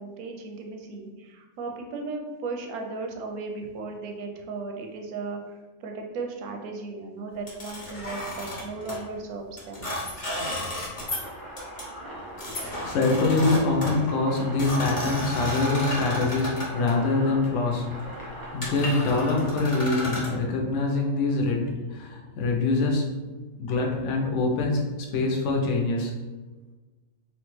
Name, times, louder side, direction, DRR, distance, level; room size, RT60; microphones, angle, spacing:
voice 1, 0.0-5.4 5.8-9.9, right 3 dB, 85° right, 2 dB, 1.1 m, -36 dB
sound 1, 7.5-9.0 9.6-11.3 11.6-11.8 12.4-16.9 17.7-17.9 18.3-18.4 18.6-20.3, equal, 35° left, 0.9 m, -33 dB
sound 2, 11.0-19.5, right 1 dB, 25° right, 0.5 m, -41 dB
voice 2, 12.3-23.1 23.6-24.9 25.1-26.1, left 3 dB, 65° left, 0 dB, 0.9 m, -25 dB
3.2 x 2.3 x 3.1 m, 1.2 s
omnidirectional pair, 1.5 m